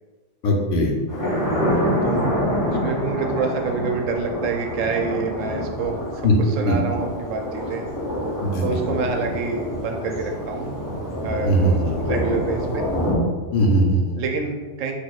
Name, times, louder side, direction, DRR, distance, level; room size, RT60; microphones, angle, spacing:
voice 1, 0.4-0.9 6.2-6.3 6.6-6.7 8.4-8.8 11.4-11.9 13.5-14.2, equal, 75° left, 0 dB, 1.0 m, -19 dB
Thunder, 1.1-13.2, equal, 20° left, 0.7 m, -26 dB
voice 2, 2.0-6.3 6.6-7.8 8.6-10.7 11.2-11.8 12.1-12.9 14.2-14.9, right 4 dB, 85° right, 3 dB, 0.9 m, -27 dB
4.2 x 2.6 x 2.3 m, 1.3 s
omnidirectional pair, 1.3 m